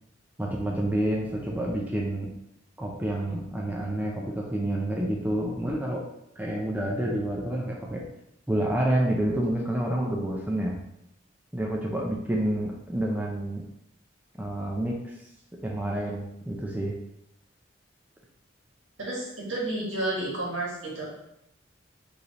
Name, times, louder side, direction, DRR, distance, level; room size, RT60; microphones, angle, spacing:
voice 1, 0.4-2.3 2.8-6.1 6.4-8.0 8.5-10.8 11.5-13.7 14.4-15.1 15.5-17.0, right 1 dB, 10° right, -2 dB, 0.5 m, -28 dB
voice 2, 19.0-21.1, right 2 dB, 80° right, -4 dB, 1.7 m, -31 dB
4.8 x 3.3 x 3.1 m, 0.81 s
head